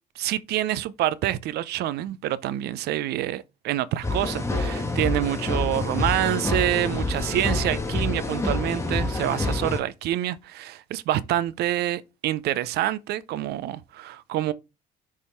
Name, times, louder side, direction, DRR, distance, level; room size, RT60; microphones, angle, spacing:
voice 1, 0.2-14.5, right 13 dB, 75° right, 0.6 m, -27 dB
sound 1, 4.0-9.8, left 2 dB, 15° left, 1.3 m, -27 dB
6.5 x 3.7 x 4.4 m
cardioid pair, 110°, 17 cm